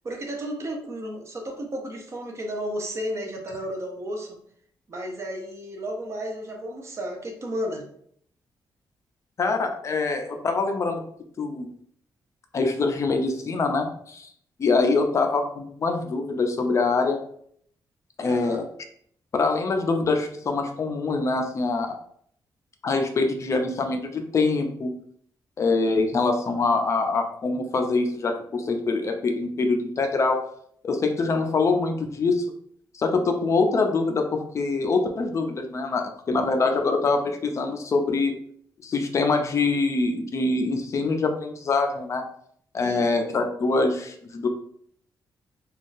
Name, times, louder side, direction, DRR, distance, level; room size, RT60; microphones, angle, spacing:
voice 1, 0.0-4.4 4.9-7.9 18.2-18.6 36.7-36.9 42.8-43.0, equal, 35° right, 2 dB, 0.6 m, -33 dB
voice 2, 9.4-11.0 11.4-11.7 12.5-14.3 14.6-17.2 18.2-18.7 19.3-22.0 22.8-24.9 25.6-30.4 30.8-32.5 32.9-38.3 38.8-42.2 42.7-44.5, left 3 dB, 40° left, 5 dB, 0.4 m, -24 dB
3.5 x 2.3 x 2.5 m, 0.64 s
cardioid pair, 140°, 8 cm